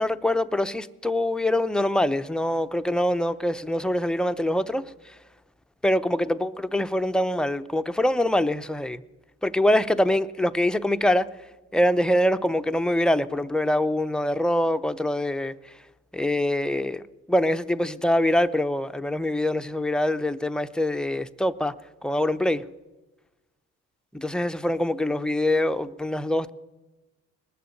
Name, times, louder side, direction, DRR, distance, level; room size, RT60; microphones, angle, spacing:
voice 1, 0.0-5.2 5.8-9.0 9.4-11.3 11.7-15.8 16.1-17.0 17.3-21.7 22.0-22.6 24.1-26.5, left 1 dB, 5° left, 0.5 m, -24 dB
19.5 x 6.8 x 9.0 m
cardioid pair, 90°, 30 cm